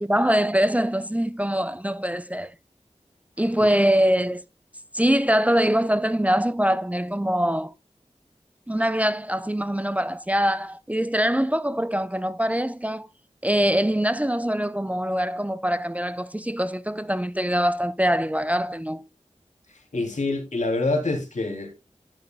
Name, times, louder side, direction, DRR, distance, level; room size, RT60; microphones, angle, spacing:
voice 1, 0.0-2.5 3.4-4.4 4.9-7.7 8.7-13.1 13.4-19.1, equal, 10° right, 0.5 m, -23 dB
voice 2, 19.7-21.7, left 2 dB, 90° left, 2.8 m, -26 dB
11.0 x 10.5 x 2.2 m
wide cardioid pair, 60°, 12 cm